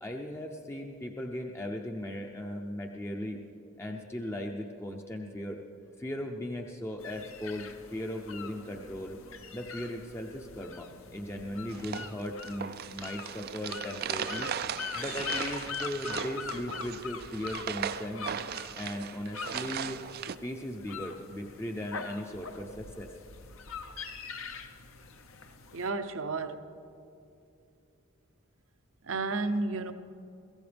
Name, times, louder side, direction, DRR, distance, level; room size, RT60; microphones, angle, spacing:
voice 1, 0.0-3.4 3.7-5.6 6.0-9.2 9.5-14.5 15.0-18.3 18.8-20.0 20.4-23.1, left 1 dB, 10° left, 2 dB, 0.6 m, -38 dB
sound 1, 7.0-25.9, left 6 dB, 65° left, 0.9 m, -43 dB
sound 2, 11.7-20.3, right 8 dB, 45° right, 0.4 m, -37 dB
voice 2, 25.7-26.6 29.0-29.9, right 3 dB, 70° right, 9 dB, 0.8 m, -32 dB
23.0 x 15.5 x 3.4 m, 2.7 s
head